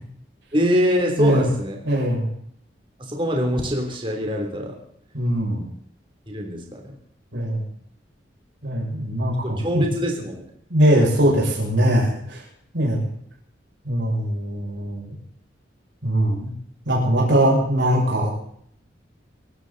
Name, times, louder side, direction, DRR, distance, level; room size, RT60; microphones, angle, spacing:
voice 1, 0.5-1.8 3.0-4.8 6.3-6.9 9.4-10.4, equal, 25° right, 1 dB, 3.3 m, -24 dB
voice 2, 1.2-1.5 1.8-2.3 5.1-5.7 7.3-7.6 8.6-9.8 10.7-12.4 12.7-13.1 13.8-15.1 16.0-16.5 16.9-18.3, right 1 dB, 75° right, -3 dB, 6.6 m, -21 dB
25.0 x 13.0 x 4.1 m, 0.66 s
head